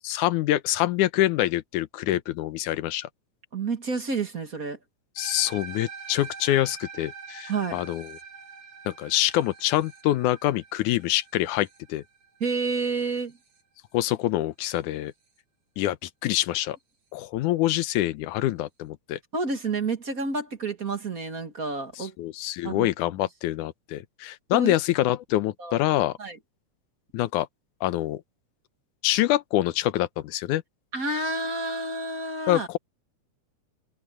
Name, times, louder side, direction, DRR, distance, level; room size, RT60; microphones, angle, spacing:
voice 1, 0.0-3.1 5.2-8.1 8.9-12.0 13.9-15.1 15.8-16.8 17.1-19.2 22.0-26.2 27.1-27.5 27.8-28.2 29.0-30.6 32.5-32.8, left 14 dB, 80° left, 2.3 m, -25 dB
voice 2, 3.5-4.8 7.5-7.8 12.4-13.3 19.3-22.1 22.6-22.9 24.5-24.7 25.6-25.8 26.2-26.4 30.9-32.7, right 3 dB, 35° right, 1.9 m, -29 dB
sound 1, 5.2-13.6, right 6 dB, 70° right, 5.4 m, -44 dB
omnidirectional pair, 3.5 m